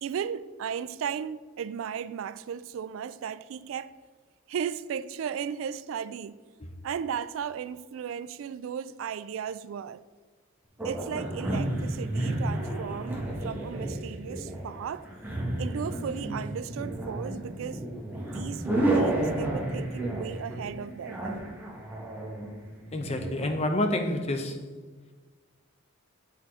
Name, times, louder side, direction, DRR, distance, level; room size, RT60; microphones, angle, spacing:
voice 1, 0.0-3.9 4.5-6.4 6.8-10.0 10.8-15.1 15.6-17.8 18.2-21.6, right 7 dB, 75° right, 0.3 m, -35 dB
sound 1, 10.8-23.5, right 1 dB, 10° right, 1.4 m, -31 dB
voice 2, 22.9-24.6, left 1 dB, 30° left, 0.7 m, -28 dB
8.3 x 4.2 x 4.8 m
head